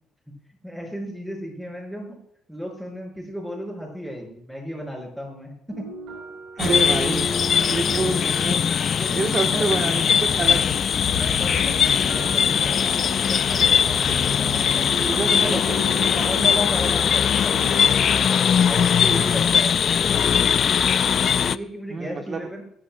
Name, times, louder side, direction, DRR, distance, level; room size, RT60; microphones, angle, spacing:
voice 1, 0.6-2.2 2.5-5.9 8.9-9.7 10.3-10.7 11.1-14.9 15.4-15.6 16.1-17.8 18.6-19.8 21.2-22.6, equal, 5° right, 0 dB, 6.0 m, -34 dB
sound 1, 5.7-18.2, right 2 dB, 80° right, 6.2 m, -37 dB
voice 2, 6.5-7.3 7.6-8.6 9.1-10.6 15.0-15.8 18.7-19.3 21.9-22.4, right 4 dB, 40° right, 3 dB, 1.2 m, -28 dB
sound 2, 6.6-21.6, left 7 dB, 50° left, 0.4 m, -20 dB
Motorcycle, 9.6-9.8 10.2-16.4, left 6 dB, 90° left, 3.0 m, -35 dB
24.0 x 10.5 x 2.2 m, 0.71 s
cardioid pair, 120°, 0 cm